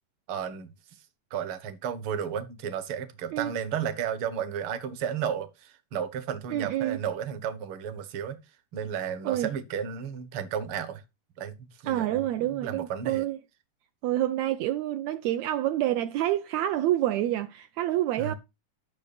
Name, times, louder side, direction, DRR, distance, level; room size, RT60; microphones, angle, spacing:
voice 1, 0.3-0.7 1.3-8.4 8.7-11.0 11.4-13.2 18.2-18.3, right 8 dB, 55° right, 1.6 m, -33 dB
voice 2, 6.5-7.0 9.2-9.5 11.9-13.4 14.0-18.3, right 13 dB, 80° right, 1.6 m, -27 dB
12.0 x 6.3 x 4.2 m
omnidirectional pair, 3.8 m